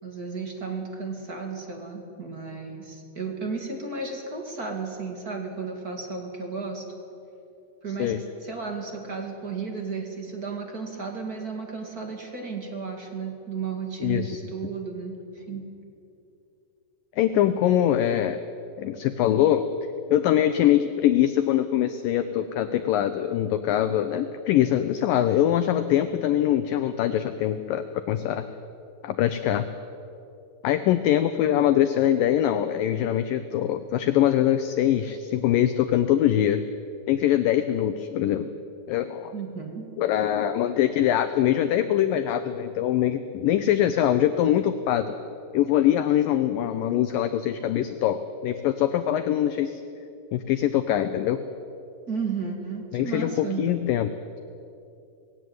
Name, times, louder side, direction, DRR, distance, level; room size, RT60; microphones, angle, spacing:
voice 1, 0.0-6.8 7.8-8.1 8.4-15.6 39.3-39.9 52.1-53.7, right 5 dB, 30° right, 2 dB, 2.0 m, -33 dB
voice 2, 14.0-14.4 17.2-18.4 18.8-19.7 20.1-28.4 29.0-29.7 30.6-36.6 37.1-38.5 38.9-39.3 40.0-45.1 45.5-49.8 50.3-51.4 52.9-54.1, left 11 dB, 85° left, 10 dB, 2.0 m, -23 dB
20.0 x 17.0 x 9.4 m, 2.7 s
omnidirectional pair, 4.9 m